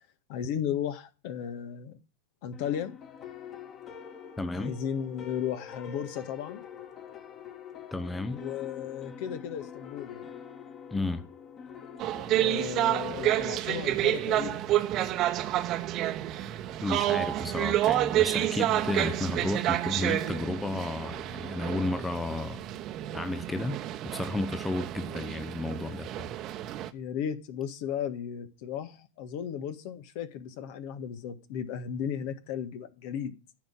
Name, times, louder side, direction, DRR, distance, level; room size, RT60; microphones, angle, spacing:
voice 1, 0.3-2.0 2.4-2.9 4.5-6.6 8.3-10.3 12.3-14.8 26.9-33.3, left 9 dB, 50° left, 1.6 m, -35 dB
sound 1, 2.5-18.1, left 7 dB, 30° left, 2.4 m, -47 dB
voice 2, 4.4-4.7 7.9-8.4 10.9-11.3 16.8-22.6 23.1-26.3, left 2 dB, 10° left, 0.9 m, -33 dB
sound 2, 12.0-26.9, right 13 dB, 35° right, 1.2 m, -29 dB
14.5 x 5.6 x 9.2 m
figure-of-eight pair, 90°, 0 cm